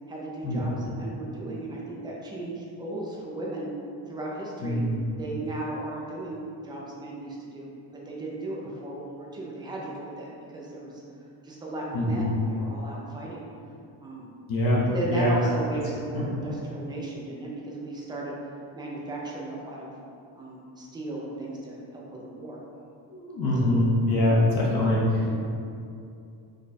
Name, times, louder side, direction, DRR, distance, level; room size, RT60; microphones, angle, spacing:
voice 1, 0.1-3.7 4.1-4.8 5.2-11.0 11.4-13.4 14.0-14.3 14.8-18.4 18.7-19.9 20.4-22.6 23.6-23.8 24.2-24.5 25.2-25.3, right 2 dB, 10° right, -4 dB, 0.3 m, -36 dB
voice 2, 4.6-5.0 11.9-12.4 14.5-15.3 16.1-16.3 23.1-25.3, left 1 dB, 50° left, -5 dB, 0.9 m, -24 dB
5.1 x 2.2 x 4.1 m, 2.6 s
cardioid pair, 165°, 48 cm